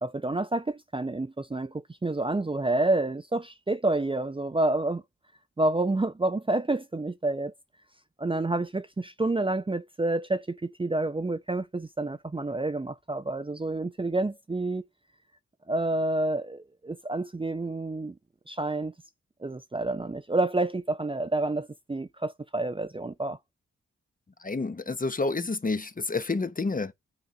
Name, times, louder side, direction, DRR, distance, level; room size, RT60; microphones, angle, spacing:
voice 1, 0.0-5.0 5.6-7.5 8.2-14.8 15.7-18.1 18.5-18.9 19.4-23.4, right 2 dB, 20° right, 0.6 m, -29 dB
voice 2, 24.4-26.9, left 3 dB, 30° left, 0.9 m, -29 dB
9.7 x 3.8 x 5.0 m
supercardioid pair, 40°, 29 cm